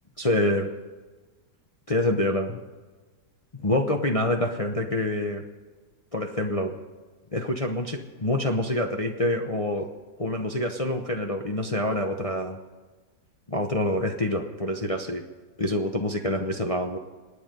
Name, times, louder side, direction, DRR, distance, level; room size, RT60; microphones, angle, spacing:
voice 1, 0.2-0.7 1.9-2.6 3.5-5.4 6.1-6.7 7.3-9.9 10.2-12.6 13.5-15.2 15.6-17.0, left 1 dB, 30° left, 3 dB, 0.7 m, -26 dB
26.0 x 9.5 x 5.4 m, 1.3 s
omnidirectional pair, 2.0 m